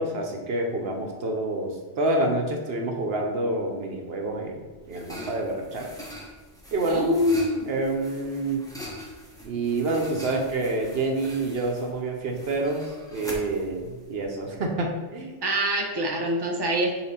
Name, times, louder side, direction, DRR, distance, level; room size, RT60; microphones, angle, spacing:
voice 1, 0.0-5.9 6.7-7.1 7.7-8.7 9.4-15.4, right 2 dB, 65° right, 2 dB, 1.0 m, -28 dB
sound 1, 4.7-14.9, equal, 5° left, 1.0 m, -42 dB
voice 2, 6.9-7.7 15.4-17.0, equal, 25° right, 0 dB, 0.8 m, -24 dB
6.1 x 3.6 x 4.3 m, 1.4 s
omnidirectional pair, 1.1 m